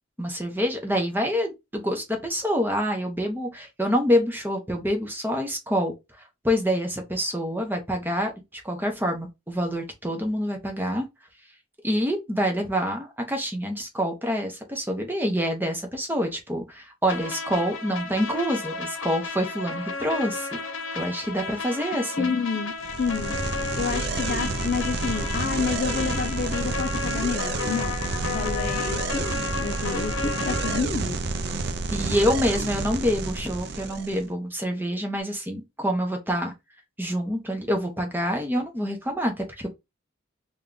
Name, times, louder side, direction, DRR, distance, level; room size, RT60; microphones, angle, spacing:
voice 1, 0.2-5.9 6.4-11.0 11.8-20.5 20.9-22.4 31.9-36.5 37.0-39.7, equal, 10° right, 0.8 m, -26 dB
sound 1, 17.1-30.8, left 4 dB, 75° left, 0.8 m, -33 dB
voice 2, 22.2-22.7 23.0-23.3 23.8-27.9 28.3-29.2 29.6-31.2, left 5 dB, 45° left, 0.4 m, -29 dB
sound 2, 22.8-34.2, right 3 dB, 50° right, 0.5 m, -29 dB
3.6 x 2.3 x 3.7 m
head